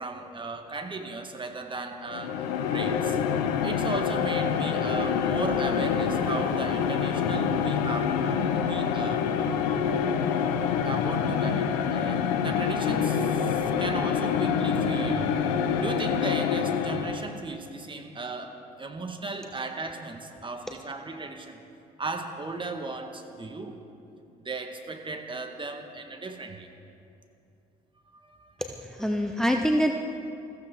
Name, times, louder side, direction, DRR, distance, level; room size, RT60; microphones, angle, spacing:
voice 1, 0.0-2.4 2.7-3.2 3.6-9.3 10.8-15.4 15.8-21.6 22.0-23.8 24.4-26.7 28.1-28.5 29.1-29.3, right 3 dB, 25° right, 4 dB, 1.9 m, -36 dB
sound 1, 2.1-17.4, left 7 dB, 80° left, 0.9 m, -26 dB
voice 2, 28.6-29.9, equal, ahead, 4 dB, 0.9 m, -25 dB
21.0 x 15.0 x 3.9 m, 2.6 s
hypercardioid pair, 55°, 21 cm